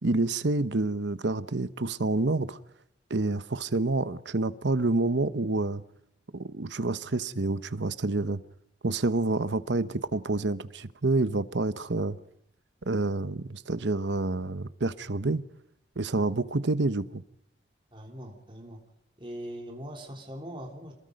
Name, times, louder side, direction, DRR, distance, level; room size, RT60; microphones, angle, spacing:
voice 1, 0.0-2.6 3.1-5.8 6.3-8.4 8.8-12.2 12.8-15.4 16.0-17.2, right 2 dB, 70° right, 0.9 m, -28 dB
voice 2, 17.9-18.8 19.2-20.9, equal, 25° right, 3.3 m, -41 dB
27.5 x 21.0 x 5.3 m
head